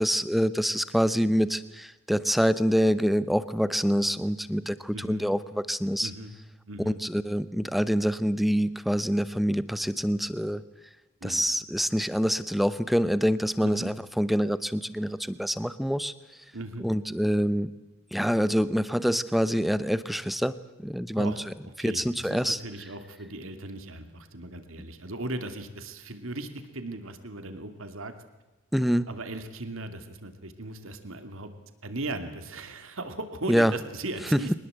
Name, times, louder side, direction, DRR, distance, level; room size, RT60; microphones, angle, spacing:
voice 1, 0.0-6.1 6.9-10.6 11.2-16.1 16.8-17.7 18.1-20.5 20.8-21.3 21.8-22.6 28.7-29.1 33.5-33.7 34.3-34.4, equal, ahead, 15 dB, 0.8 m, -26 dB
voice 2, 4.9-5.2 6.0-6.3 6.7-7.0 11.2-11.4 13.6-13.9 16.5-16.9 21.2-21.4 21.8-28.1 29.1-31.5 31.8-34.6, right 2 dB, 70° right, 8 dB, 2.6 m, -37 dB
24.0 x 20.0 x 8.1 m, 1.1 s
head